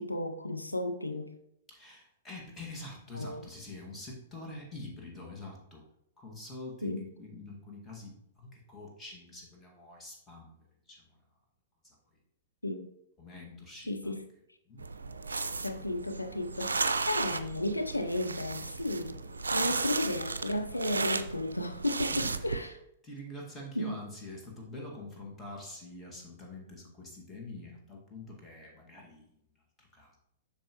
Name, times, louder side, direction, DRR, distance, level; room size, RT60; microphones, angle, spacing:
voice 1, 0.0-1.3 3.1-3.4 6.8-7.0 12.6-12.9 13.9-14.2 15.6-19.2 19.5-22.7 23.8-24.0, left 1 dB, 90° left, 0.5 m, -33 dB
voice 2, 1.7-5.8 6.2-11.2 11.8-12.0 13.2-14.2 14.7-14.9 22.1-22.7 23.0-29.4 29.8-30.2, left 2 dB, 15° left, 2.0 m, -46 dB
sound 1, 14.8-22.6, right 4 dB, 75° right, 0.4 m, -34 dB
7.4 x 6.4 x 3.1 m
figure-of-eight pair, 105°, 0 cm